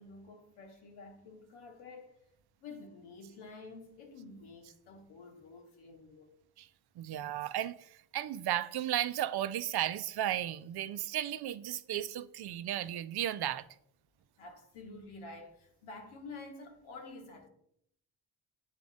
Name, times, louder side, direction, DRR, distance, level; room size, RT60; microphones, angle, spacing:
voice 1, 0.0-2.2 2.6-6.3 14.4-17.5, left 3 dB, 75° left, 1.3 m, -49 dB
voice 2, 7.0-13.7, right 12 dB, 55° right, 0.6 m, -34 dB
8.1 x 3.5 x 4.0 m
supercardioid pair, 45°, 49 cm